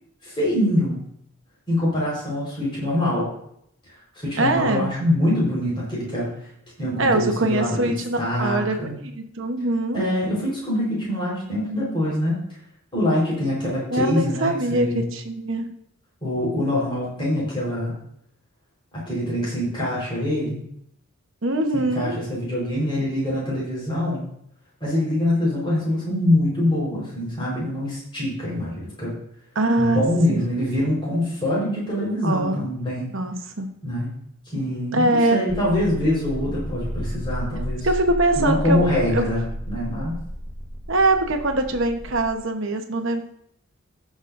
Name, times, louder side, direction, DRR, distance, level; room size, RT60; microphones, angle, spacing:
voice 1, 0.2-1.0 1.7-3.3 4.1-6.3 6.8-9.0 9.9-12.4 12.9-15.1 16.2-17.9 18.9-20.6 21.7-24.3 24.8-29.2 29.8-33.1 33.8-34.1 34.5-37.9 38.4-40.2, left 1 dB, 25° left, -6 dB, 4.3 m, -24 dB
voice 2, 4.4-4.9 7.0-10.1 13.9-15.7 21.4-22.2 29.5-30.0 30.3-30.6 32.2-32.6 33.1-33.7 34.9-35.4 37.8-38.9 39.1-39.2 40.9-43.2, right 2 dB, 65° right, 5 dB, 1.0 m, -23 dB
sound 1, 35.5-42.3, equal, 5° left, 1.0 m, -33 dB
18.5 x 6.3 x 2.6 m, 0.73 s
head